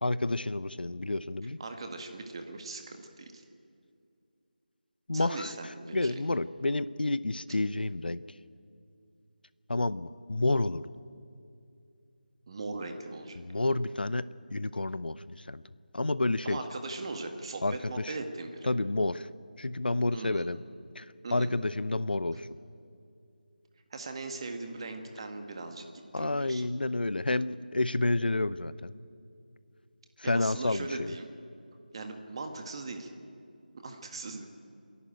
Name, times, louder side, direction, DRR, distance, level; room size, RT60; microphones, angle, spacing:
voice 1, 0.0-1.6 5.1-5.5 5.9-8.2 9.7-10.9 13.4-15.6 15.9-16.6 17.6-18.2 18.6-19.3 19.6-20.6 21.0-21.1 21.3-22.5 26.1-28.9 30.2-31.1, left 2 dB, 75° left, 16 dB, 0.7 m, -30 dB
voice 2, 1.6-3.4 5.1-6.2 12.5-13.4 16.4-18.7 20.1-20.5 21.2-21.5 23.9-25.8 26.2-26.7 30.2-31.3 31.9-33.1 33.7-34.5, right 3 dB, 30° right, 6 dB, 1.8 m, -39 dB
28.5 x 11.0 x 9.1 m, 2.5 s
figure-of-eight pair, 165°, 5 cm